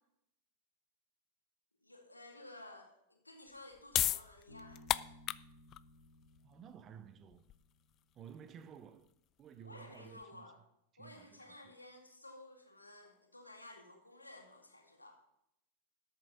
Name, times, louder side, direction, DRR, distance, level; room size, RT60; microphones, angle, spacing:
voice 1, 1.8-4.8 9.6-10.6 11.0-15.2, left 2 dB, 85° left, 2.2 m, -54 dB
sound 1, 3.5-10.2, left 13 dB, 35° left, 0.4 m, -39 dB
Bass guitar, 4.5-8.0, left 1 dB, 90° right, 2.5 m, -60 dB
voice 2, 6.4-7.4 8.1-9.1 9.4-10.5 10.9-11.7, right 8 dB, 30° right, 0.9 m, -54 dB
13.0 x 8.5 x 5.4 m
figure-of-eight pair, 90°, 0 cm